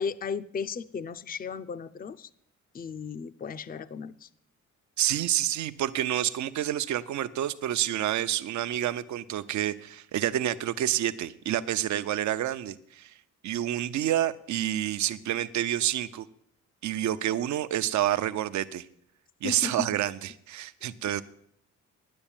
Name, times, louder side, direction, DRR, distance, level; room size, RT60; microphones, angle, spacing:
voice 1, 0.0-2.3 2.7-4.3 19.4-20.0 21.1-21.2, left 5 dB, 30° left, 14 dB, 0.6 m, -35 dB
voice 2, 5.0-13.1 13.4-16.3 16.8-18.9 19.4-21.2, right 12 dB, 70° right, 12 dB, 0.7 m, -28 dB
10.0 x 8.7 x 8.8 m, 0.69 s
cardioid pair, 90°, 30 cm